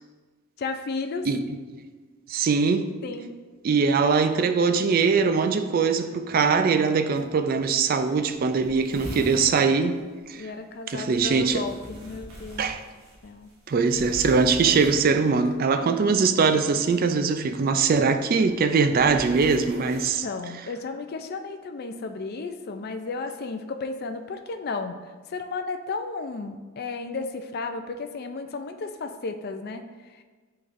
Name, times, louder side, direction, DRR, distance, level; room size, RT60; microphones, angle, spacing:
voice 1, 0.6-1.3 3.0-3.4 10.3-12.7 13.2-13.5 19.8-25.0 25.3-30.2, left 3 dB, 45° left, 0.4 m, -34 dB
voice 2, 2.3-2.9 3.6-10.0 10.3-10.5 10.9-11.7 12.6-12.8 13.7-20.3, right 5 dB, 40° right, 0.3 m, -22 dB
sound 1, 7.2-7.3 7.6-7.7 7.9-8.0 8.2-9.5 11.1-15.5 16.7-17.0 17.9-20.1, equal, 80° right, 1.3 m, -42 dB
10.5 x 4.0 x 2.6 m
head